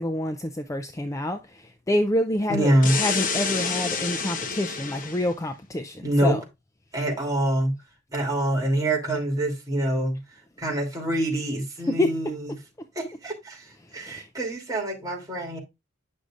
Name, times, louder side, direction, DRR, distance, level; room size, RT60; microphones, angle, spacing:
voice 1, 0.0-6.4 11.9-12.2 14.0-14.3, left 1 dB, 15° left, 0.5 m, -27 dB
voice 2, 2.5-3.0 6.0-6.4 6.9-7.7 8.1-10.2 10.6-12.5 12.9-13.6 13.9-15.6, right 1 dB, 20° right, 3.0 m, -25 dB
sound 1, 2.8-5.3, left 5 dB, 45° left, 1.0 m, -28 dB
9.6 x 6.4 x 2.5 m
head